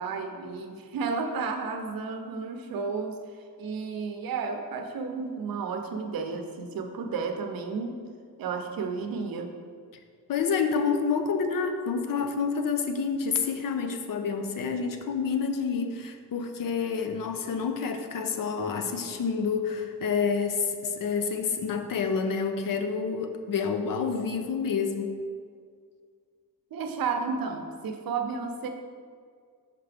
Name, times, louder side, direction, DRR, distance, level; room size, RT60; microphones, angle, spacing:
voice 1, 0.0-8.0 8.4-9.5 26.7-28.7, right 5 dB, 85° right, 5 dB, 0.7 m, -32 dB
voice 2, 10.3-25.2, left 5 dB, 70° left, 7 dB, 0.6 m, -28 dB
5.8 x 5.2 x 3.4 m, 2.1 s
wide cardioid pair, 130°, 34 cm